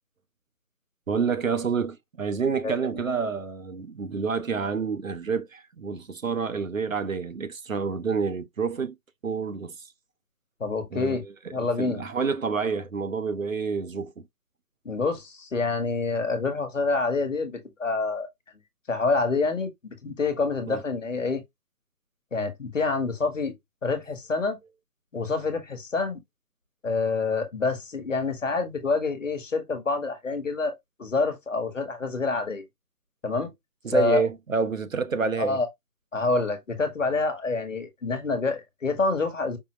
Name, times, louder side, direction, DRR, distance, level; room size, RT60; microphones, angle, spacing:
voice 1, 1.1-9.0 9.2-9.9 10.9-11.3 11.8-14.2 20.7-20.8 25.2-25.3 33.8-35.6, right 5 dB, 55° right, 0.7 m, -28 dB
voice 2, 10.6-11.2 11.5-12.0 14.8-18.3 18.9-19.7 20.0-21.4 22.3-23.5 23.8-24.6 25.1-26.2 26.8-30.7 31.0-32.6 33.2-33.5 33.9-34.2 35.4-35.7 36.1-39.6, left 3 dB, 50° left, 1.2 m, -27 dB
5.3 x 2.1 x 2.9 m
figure-of-eight pair, 170°, 47 cm